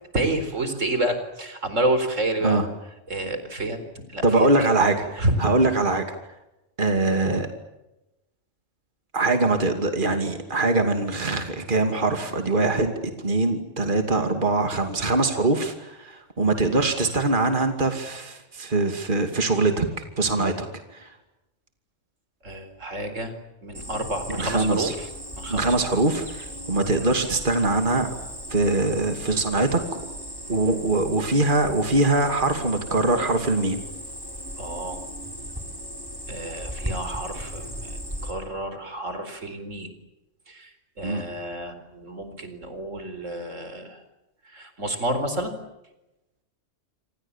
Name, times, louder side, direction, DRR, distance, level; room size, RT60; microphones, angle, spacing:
voice 1, 0.1-2.6 3.1-3.8 4.1-4.7 5.2-5.3 22.4-23.3 23.6-25.1 25.4-25.8 34.6-35.0 36.3-39.9 40.5-44.0 44.5-45.5, right 1 dB, 85° right, 9 dB, 4.6 m, -29 dB
voice 2, 4.2-6.1 6.8-7.5 9.1-12.9 13.2-20.7 20.9-21.1 24.3-24.9 25.5-28.1 28.5-29.8 30.5-33.8 41.0-41.2, right 2 dB, 40° right, 6 dB, 2.8 m, -23 dB
Cricket, 23.7-38.3, equal, 15° right, 5.6 m, -37 dB
28.5 x 26.5 x 7.3 m, 0.94 s
omnidirectional pair, 1.3 m